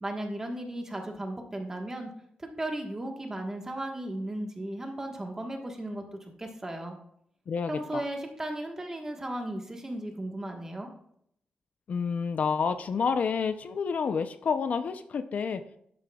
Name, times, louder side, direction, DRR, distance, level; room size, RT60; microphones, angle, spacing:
voice 1, 0.0-2.1 2.4-6.0 6.4-7.0 7.7-10.9, right 1 dB, 15° right, 2 dB, 1.3 m, -35 dB
voice 2, 7.5-8.0 11.9-15.6, left 5 dB, 55° left, 10 dB, 0.5 m, -29 dB
11.0 x 8.5 x 2.3 m, 0.71 s
wide cardioid pair, 150°, 3 cm